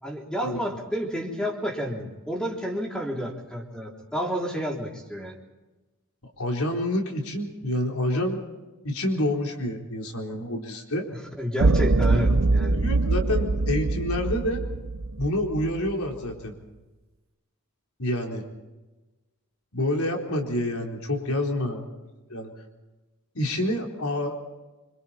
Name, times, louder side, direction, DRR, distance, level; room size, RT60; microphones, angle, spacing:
voice 1, 0.0-5.4 11.1-12.8, equal, 5° left, -1 dB, 3.4 m, -30 dB
voice 2, 6.4-8.4 8.8-11.1 12.1-12.3 12.7-14.6 15.2-16.5 18.0-18.4 19.7-21.8 22.3-22.5 23.3-24.4, left 1 dB, 85° left, 1 dB, 4.1 m, -28 dB
sound 1, 11.6-15.9, right 3 dB, 65° right, 0.7 m, -23 dB
26.5 x 25.5 x 4.4 m, 1.2 s
head